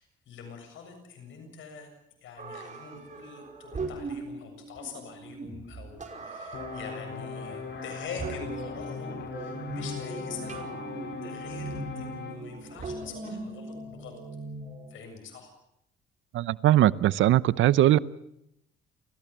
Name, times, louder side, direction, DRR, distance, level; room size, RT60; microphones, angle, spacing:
voice 1, 0.0-1.9 2.2-10.7 11.2-14.2 14.9-15.5, left 5 dB, 75° left, 5 dB, 7.5 m, -44 dB
sound 1, 2.4-14.9, right 3 dB, 40° right, 5.2 m, -40 dB
sound 2, 6.5-12.4, left 5 dB, 60° left, 4.9 m, -39 dB
voice 2, 16.3-18.0, right 13 dB, 75° right, 19 dB, 0.8 m, -20 dB
29.5 x 15.5 x 7.4 m, 0.80 s
cardioid pair, 90°, 20 cm